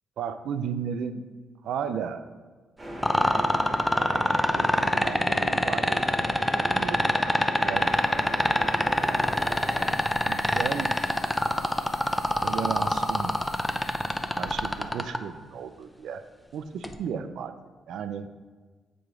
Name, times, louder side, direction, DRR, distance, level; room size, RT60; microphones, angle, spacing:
voice 1, 0.2-1.3 1.6-2.2 4.1-7.9 8.9-9.2 10.3-10.9 12.4-13.3 14.4-16.2 16.5-17.5 17.9-18.3, right 7 dB, 75° right, 10 dB, 0.4 m, -35 dB
sound 1, 2.8-9.9, right 1 dB, 20° right, 1.4 m, -37 dB
sound 2, 3.0-15.2 16.8-16.9, left 1 dB, 5° left, 0.5 m, -23 dB
sound 3, 6.2-6.3 7.7-15.6, left 2 dB, 80° left, 1.3 m, -48 dB
7.9 x 3.0 x 4.8 m, 1.4 s
cardioid pair, 90°, 0 cm